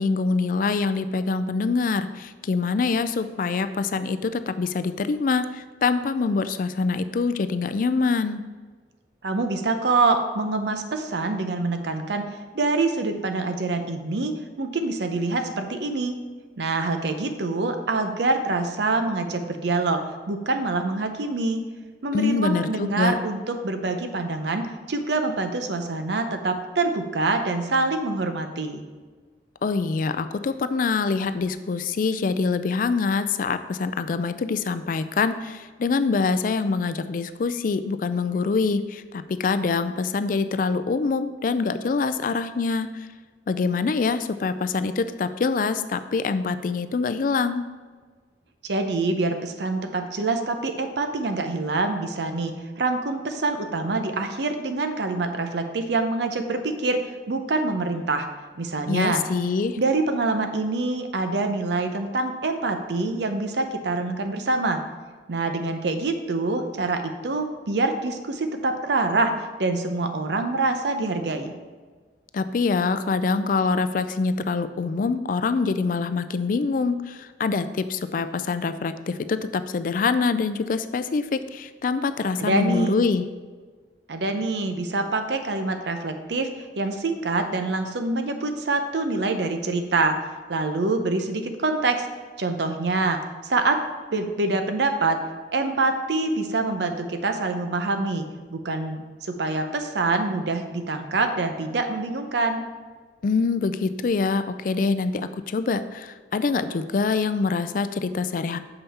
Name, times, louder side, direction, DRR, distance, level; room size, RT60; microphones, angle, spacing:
voice 1, 0.0-8.4 22.1-23.2 29.6-43.1 43.5-47.6 58.9-59.8 72.3-83.3 103.2-108.6, left 4 dB, 50° left, 12 dB, 0.4 m, -25 dB
voice 2, 9.2-12.3 12.5-16.1 16.6-21.6 22.0-28.8 48.6-57.0 57.3-58.3 58.6-59.2 59.8-64.8 65.3-69.3 69.6-71.5 82.4-83.0 84.1-86.5 86.8-90.2 90.5-92.1 92.4-93.8 94.1-95.2 95.5-98.2 98.5-102.6, right 3 dB, 75° right, 7 dB, 0.7 m, -25 dB
6.8 x 5.7 x 4.2 m, 1.5 s
head